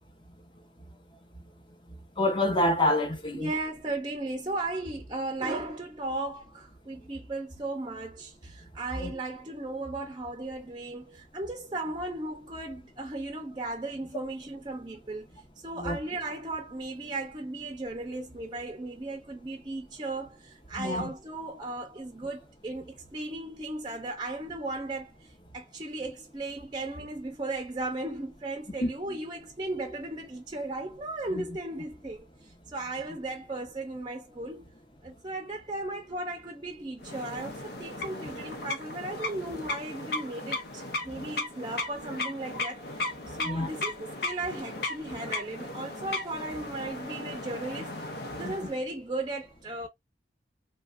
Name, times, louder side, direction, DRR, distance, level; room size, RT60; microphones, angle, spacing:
voice 1, 2.2-3.5 9.0-9.1 15.8-16.0 20.8-21.1 28.8-28.9 31.3-31.4 43.4-43.7 48.4-48.6, left 1 dB, 25° left, 0.9 m, -27 dB
voice 2, 3.3-15.3 15.6-34.7 35.0-48.0 48.3-49.9, right 2 dB, 25° right, 0.6 m, -36 dB
sound 1, 37.0-48.8, left 2 dB, 60° left, 0.6 m, -36 dB
3.3 x 2.5 x 2.4 m
head